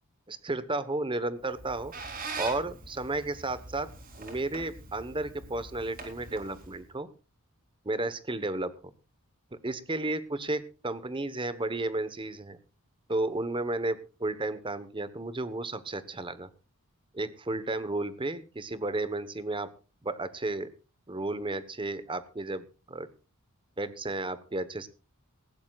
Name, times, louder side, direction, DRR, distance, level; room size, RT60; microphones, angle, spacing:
voice 1, 0.3-1.9 2.4-3.9 4.2-7.1 7.8-8.7 9.5-12.6 13.1-16.5 17.1-19.7 20.0-20.7 21.1-23.1 23.8-24.9, right 2 dB, 25° right, 14 dB, 1.1 m, -33 dB
Squeak, 1.4-6.9, right 3 dB, 40° right, 3.7 m, -43 dB
19.0 x 16.0 x 2.4 m, 0.34 s
head